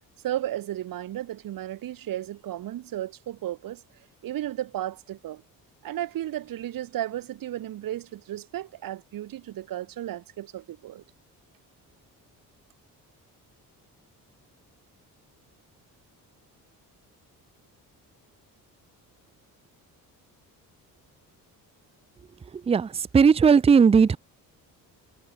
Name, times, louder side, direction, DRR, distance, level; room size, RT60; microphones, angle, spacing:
voice 1, 0.2-3.8 4.2-5.4 5.8-11.0, right 13 dB, 70° right, 3.9 m, -34 dB
voice 2, 22.7-24.2, right 6 dB, 15° right, 0.5 m, -17 dB
cardioid pair, 135°, 35 cm